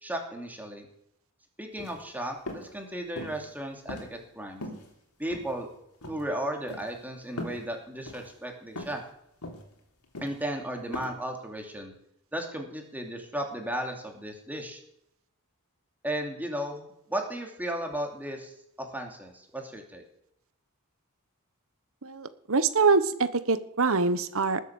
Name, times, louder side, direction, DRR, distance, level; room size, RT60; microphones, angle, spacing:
voice 1, 0.0-0.9 1.6-4.6 5.2-5.7 6.1-9.0 10.2-11.9 12.3-14.8 16.0-18.5 18.8-20.0, right 1 dB, 10° right, 2 dB, 2.8 m, -35 dB
sound 1, 1.7-2.0 2.5-2.7 3.2-3.5 3.9-4.4 4.6-4.9 5.3-5.8 6.0-6.2 6.7-6.9 7.4-7.6 8.1-8.3 8.8-9.0 9.4-9.7 10.1-10.4 10.9-11.1, left 1 dB, 85° left, 3.3 m, -39 dB
voice 2, 22.0-24.6, right 4 dB, 65° right, 13 dB, 1.2 m, -24 dB
19.5 x 8.2 x 7.1 m, 0.76 s
head